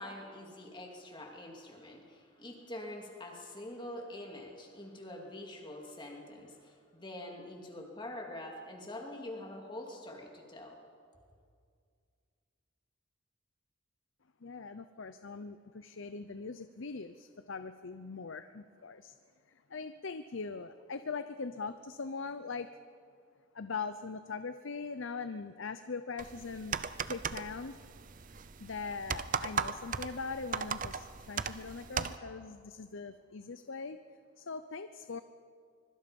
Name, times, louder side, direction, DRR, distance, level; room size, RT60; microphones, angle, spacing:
voice 1, 0.0-10.8, left 1 dB, 25° left, 1 dB, 2.8 m, -45 dB
voice 2, 14.4-19.1 19.5-22.7 23.5-26.8 27.1-27.8 28.6-34.0 34.4-35.2, left 4 dB, 65° left, 10 dB, 0.7 m, -41 dB
sound 1, 26.2-32.2, right 6 dB, 40° right, 0.7 m, -38 dB
25.0 x 23.0 x 5.4 m, 2.2 s
head